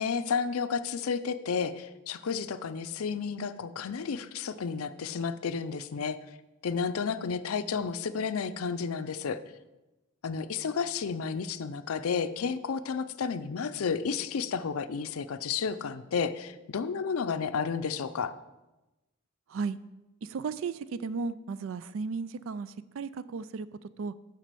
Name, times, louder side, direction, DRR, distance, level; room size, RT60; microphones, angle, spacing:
voice 1, 0.0-6.2 6.6-9.4 10.2-18.3, left 6 dB, 80° left, 12 dB, 0.5 m, -32 dB
voice 2, 20.2-24.1, right 4 dB, 65° right, 16 dB, 0.4 m, -35 dB
7.3 x 5.4 x 6.8 m, 1.1 s
head